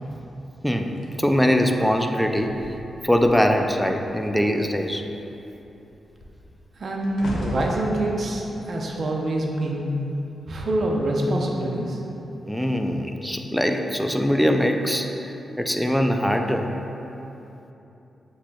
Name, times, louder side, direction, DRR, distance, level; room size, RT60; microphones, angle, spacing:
voice 1, 0.6-2.5 3.0-5.0 12.5-15.1 15.6-16.7, equal, ahead, 4 dB, 0.3 m, -22 dB
sound 1, 1.0-3.7 4.0-4.3 4.7-10.0 10.7-11.0, left 1 dB, 75° left, 0.6 m, -38 dB
voice 2, 6.8-9.9 10.5-12.0, right 1 dB, 60° right, -1 dB, 0.6 m, -25 dB
7.3 x 3.1 x 2.2 m, 3.0 s
cardioid pair, 70°, 0 cm